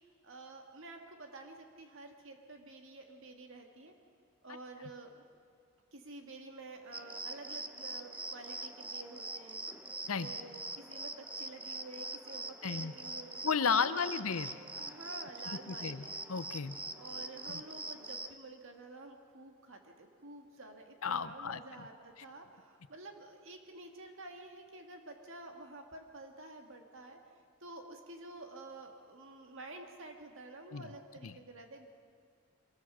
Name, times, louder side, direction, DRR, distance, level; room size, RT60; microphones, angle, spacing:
voice 1, 0.2-3.9 4.4-5.2 5.9-9.9 10.2-13.4 13.8-14.2 14.8-16.2 17.0-27.2 27.6-31.9, right 2 dB, 60° right, 4 dB, 1.9 m, -50 dB
sound 1, 6.9-18.3, right 2 dB, 5° right, 0.6 m, -43 dB
voice 2, 12.6-12.9 13.4-14.5 15.7-16.8 21.0-21.6 30.7-30.9 31.2-31.3, left 5 dB, 65° left, 12 dB, 0.7 m, -33 dB
24.0 x 21.5 x 6.2 m, 2.3 s
head